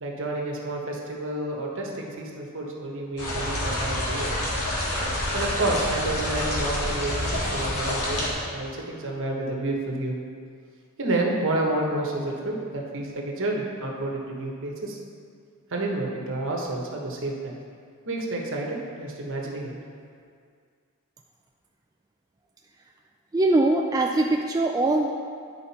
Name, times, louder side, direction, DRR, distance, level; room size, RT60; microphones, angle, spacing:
voice 1, 0.0-4.3 5.3-10.2 11.0-15.0 15.7-17.5 18.0-19.7, right 2 dB, 60° right, -1 dB, 1.2 m, -29 dB
sound 1, 3.2-8.3, left 1 dB, 85° left, 1.8 m, -27 dB
voice 2, 23.3-25.1, right 2 dB, 15° right, 1 dB, 0.3 m, -22 dB
10.5 x 5.0 x 4.2 m, 2.2 s
head